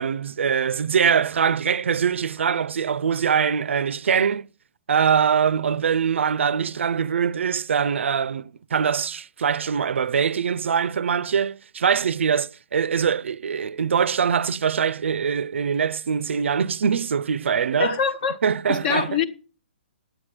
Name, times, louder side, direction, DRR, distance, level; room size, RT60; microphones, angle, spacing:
voice 1, 0.0-4.5 4.9-18.0 18.4-19.2, right 7 dB, 80° right, 0.5 m, -23 dB
voice 2, 17.8-18.4 18.7-19.2, left 6 dB, 45° left, 1.2 m, -24 dB
9.8 x 8.2 x 6.0 m
hypercardioid pair, 145°, 6 cm